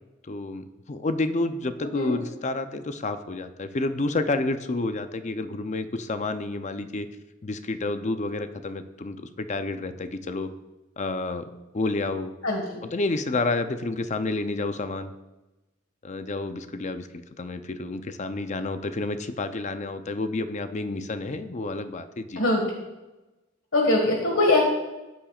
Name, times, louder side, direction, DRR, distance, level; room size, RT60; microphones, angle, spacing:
voice 1, 0.2-7.1 7.4-10.5 11.0-11.5 11.7-12.3 12.8-15.1 16.0-22.4, left 2 dB, 35° left, 10 dB, 0.5 m, -29 dB
voice 2, 23.7-24.6, left 2 dB, 85° left, 0 dB, 1.7 m, -21 dB
13.5 x 8.7 x 2.4 m, 1.0 s
head